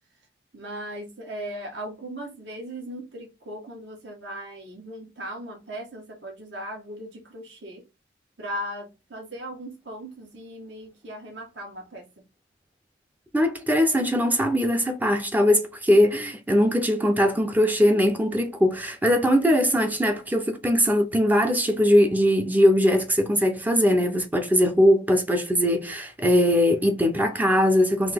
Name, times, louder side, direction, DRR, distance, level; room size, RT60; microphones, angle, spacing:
voice 1, 0.5-7.8 8.4-12.0, equal, 65° right, 1.5 m, -38 dB
voice 2, 13.3-28.1, equal, 10° right, 0.5 m, -21 dB
3.9 x 2.9 x 3.4 m
head